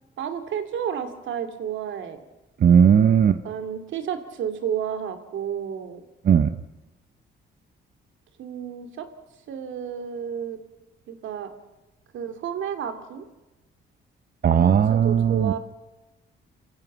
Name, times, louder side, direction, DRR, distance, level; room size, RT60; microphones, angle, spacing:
voice 1, 0.2-2.2 3.4-6.0 8.4-9.1 9.5-10.6 11.1-11.5 12.1-13.2 14.9-15.6, right 8 dB, 75° right, 7 dB, 2.8 m, -31 dB
voice 2, 2.6-3.4 6.2-6.5 14.4-15.5, right 8 dB, 50° right, 10 dB, 1.0 m, -17 dB
29.0 x 16.0 x 7.5 m, 1.1 s
cardioid pair, 90°, 20 cm